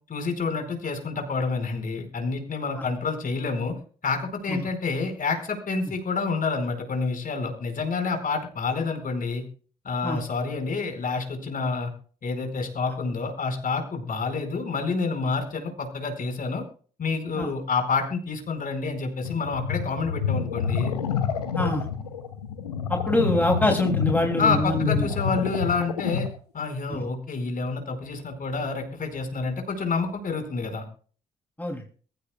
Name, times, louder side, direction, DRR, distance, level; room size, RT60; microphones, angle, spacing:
voice 1, 0.1-3.7 4.0-9.4 9.8-11.9 12.2-16.6 17.0-20.9 24.4-26.3 26.5-30.8, left 4 dB, 45° left, 5 dB, 4.7 m, -28 dB
sound 1, 19.2-26.4, left 7 dB, 90° left, 1.0 m, -28 dB
voice 2, 21.5-21.9 22.9-25.1 26.9-27.0 31.6-31.8, left 1 dB, 10° left, 2 dB, 2.6 m, -25 dB
22.5 x 14.5 x 2.2 m, 0.42 s
hypercardioid pair, 45°, 19 cm